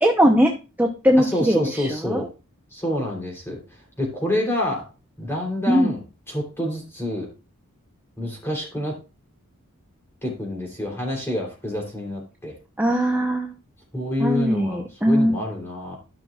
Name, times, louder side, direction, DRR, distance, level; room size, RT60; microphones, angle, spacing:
voice 1, 0.0-2.2 5.7-5.9 12.8-13.5 14.2-15.4, equal, 10° right, 2 dB, 0.7 m, -20 dB
voice 2, 1.2-2.3 2.7-3.6 4.0-4.9 5.2-7.3 8.2-9.0 10.2-12.5 13.9-16.0, left 1 dB, 10° left, -1 dB, 3.2 m, -27 dB
13.5 x 5.8 x 2.4 m, 0.32 s
head